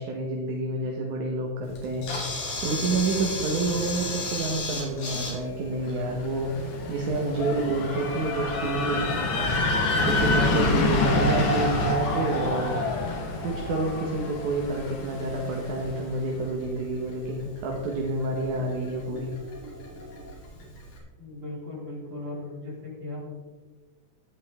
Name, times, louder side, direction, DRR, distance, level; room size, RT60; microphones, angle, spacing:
voice 1, 0.0-12.8 13.4-19.3, right 2 dB, 70° right, 0 dB, 2.7 m, -29 dB
Camera, 1.7-21.0, left 1 dB, 75° left, 4.5 m, -38 dB
sound 1, 4.3-20.3, left 1 dB, 10° right, 1.1 m, -45 dB
sound 2, 6.1-15.9, left 2 dB, 50° left, 1.8 m, -27 dB
voice 2, 21.2-23.5, left 2 dB, 40° right, -6 dB, 5.1 m, -38 dB
14.5 x 10.5 x 3.6 m, 1.3 s
omnidirectional pair, 3.7 m